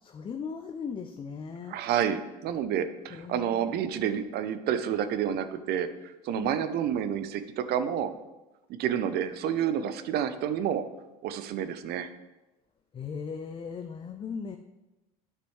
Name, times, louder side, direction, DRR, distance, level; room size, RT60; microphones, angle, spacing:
voice 1, 0.0-1.8 3.1-4.3 6.3-6.5 12.9-14.6, left 6 dB, 25° left, 7 dB, 0.5 m, -38 dB
voice 2, 1.7-8.1 8.7-10.9 11.2-12.1, right 9 dB, 55° right, 11 dB, 0.7 m, -29 dB
9.8 x 6.1 x 3.2 m, 1.0 s
hypercardioid pair, 85°, 20 cm